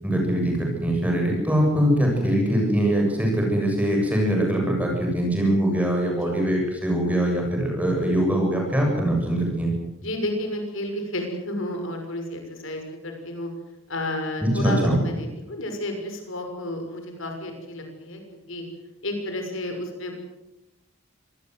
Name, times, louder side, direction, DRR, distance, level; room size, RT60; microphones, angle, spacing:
voice 1, 0.0-9.7 14.4-15.0, right 1 dB, 5° right, 0 dB, 7.6 m, -22 dB
voice 2, 10.0-13.5 13.9-18.2 18.5-18.6 19.0-20.1, left 1 dB, 70° left, 4 dB, 6.2 m, -31 dB
25.5 x 19.5 x 8.0 m, 0.92 s
head